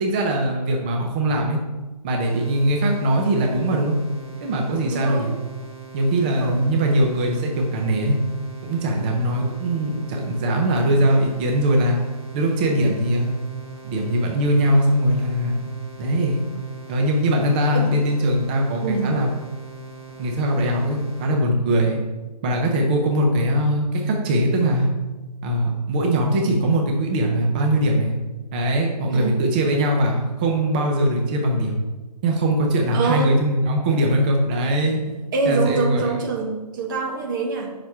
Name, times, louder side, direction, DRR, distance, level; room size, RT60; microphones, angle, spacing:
voice 1, 0.0-1.6 2.0-4.0 4.4-5.3 5.9-8.2 8.6-12.0 12.3-13.3 13.8-15.7 16.0-16.4 16.9-19.3 20.2-22.0 22.4-24.9 25.4-28.1 28.5-31.8 32.2-35.2 35.5-36.1, right 1 dB, 15° right, 1 dB, 0.5 m, -21 dB
sound 1, 2.2-21.3, right 3 dB, 55° right, 2.9 m, -41 dB
voice 2, 4.9-5.3 6.2-6.6 17.7-17.9 18.8-19.2 29.1-29.4 32.9-33.3 35.3-37.7, right 4 dB, 30° right, 1 dB, 1.2 m, -25 dB
6.9 x 5.8 x 4.7 m, 1.2 s
hypercardioid pair, 160°, 21 cm